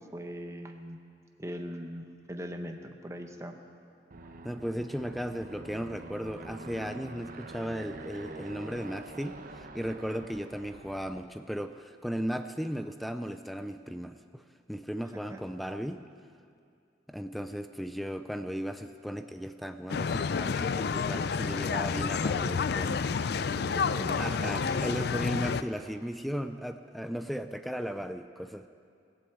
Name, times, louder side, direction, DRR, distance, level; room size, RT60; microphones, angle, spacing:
voice 1, 0.1-1.0 1.4-2.8 3.0-3.6 15.3-15.4 23.3-24.8, equal, 15° right, 4 dB, 0.9 m, -41 dB
Aircraft, 4.1-11.4, right 2 dB, 50° right, 0.8 m, -46 dB
voice 2, 4.4-14.4 14.7-16.0 17.1-23.1 24.2-28.7, equal, ahead, 9 dB, 0.4 m, -36 dB
sound 1, 19.9-25.6, left 5 dB, 65° left, 0.4 m, -29 dB
17.0 x 7.8 x 8.0 m, 2.4 s
head